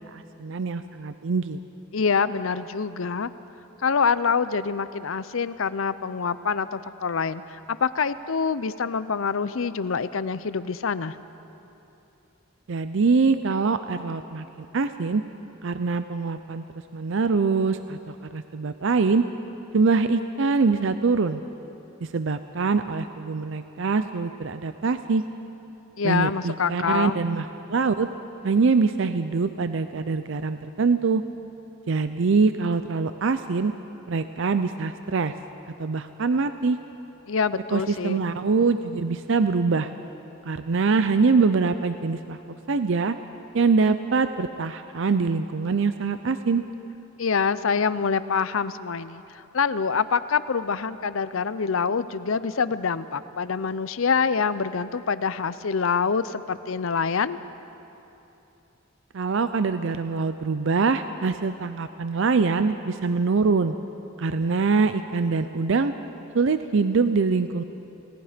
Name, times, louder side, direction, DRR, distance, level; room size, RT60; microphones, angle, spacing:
voice 1, 0.1-1.6 12.7-14.5 14.7-15.2 15.6-16.6 16.9-19.2 19.7-21.4 22.0-25.2 26.0-28.1 28.4-31.2 31.9-33.7 34.1-35.3 35.8-36.8 37.7-39.9 40.5-42.4 42.7-43.1 43.5-46.6 59.1-63.7 64.2-65.9 66.3-67.6, right 4 dB, 65° right, 10 dB, 0.5 m, -24 dB
voice 2, 1.9-3.3 3.8-11.2 26.0-27.2 37.3-38.3 47.2-49.2 49.5-57.4, left 5 dB, 75° left, 14 dB, 0.6 m, -25 dB
28.5 x 18.0 x 5.1 m, 3.0 s
head